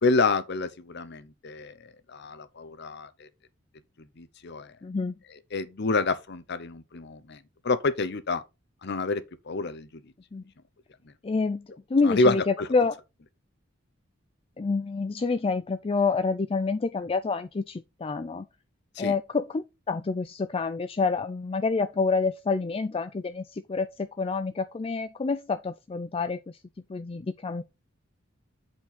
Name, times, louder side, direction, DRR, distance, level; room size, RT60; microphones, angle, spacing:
voice 1, 0.0-3.3 4.2-4.7 5.3-8.4 8.8-10.1 12.0-12.7 18.9-19.1, left 3 dB, 60° left, 0.8 m, -28 dB
voice 2, 4.8-5.2 10.3-10.4 11.2-11.6 11.9-12.9 14.6-18.4 19.0-26.6 26.9-27.6, left 4 dB, 30° left, 0.4 m, -28 dB
8.3 x 4.5 x 4.2 m
head